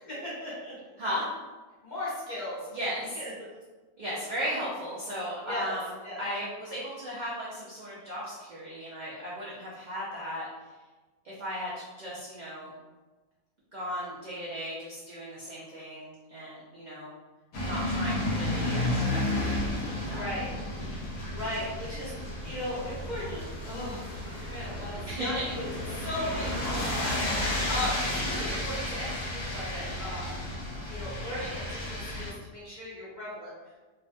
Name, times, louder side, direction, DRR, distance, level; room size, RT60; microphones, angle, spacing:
voice 1, 0.0-0.7 1.8-2.7 3.2-3.5 5.4-5.7 6.0-6.2 20.0-20.5 20.9-22.2 22.4-25.6 25.9-30.3 30.9-33.5, left 1 dB, 40° left, -9 dB, 0.8 m, -37 dB
voice 2, 2.7-3.2 4.0-5.9 6.2-10.5 11.2-12.8 13.7-17.1 17.6-20.3 25.1-25.5, equal, 70° right, -7 dB, 0.4 m, -36 dB
sound 1, 17.5-32.3, left 1 dB, 75° left, 0.9 m, -32 dB
2.5 x 2.2 x 2.5 m, 1.2 s
omnidirectional pair, 1.4 m